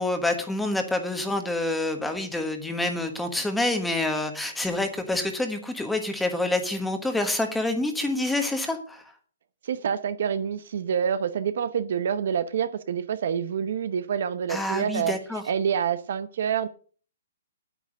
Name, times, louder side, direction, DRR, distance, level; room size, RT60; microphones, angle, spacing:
voice 1, 0.0-9.0 14.5-15.4, left 2 dB, 5° left, 6 dB, 1.3 m, -27 dB
voice 2, 9.6-15.2 15.4-16.7, right 8 dB, 60° right, 13 dB, 0.8 m, -27 dB
9.1 x 9.0 x 6.3 m, 0.43 s
hypercardioid pair, 165°, 0 cm